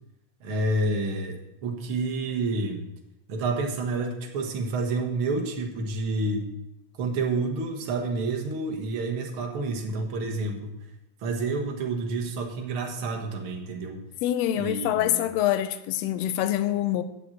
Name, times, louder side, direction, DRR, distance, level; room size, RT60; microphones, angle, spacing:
voice 1, 0.4-2.9 3.3-6.5 6.9-10.7 11.2-14.0 14.5-15.2, right 3 dB, 55° right, 2.0 m, -29 dB
voice 2, 14.2-17.0, left 12 dB, 75° left, 1.7 m, -25 dB
8.2 x 6.8 x 7.9 m
omnidirectional pair, 3.3 m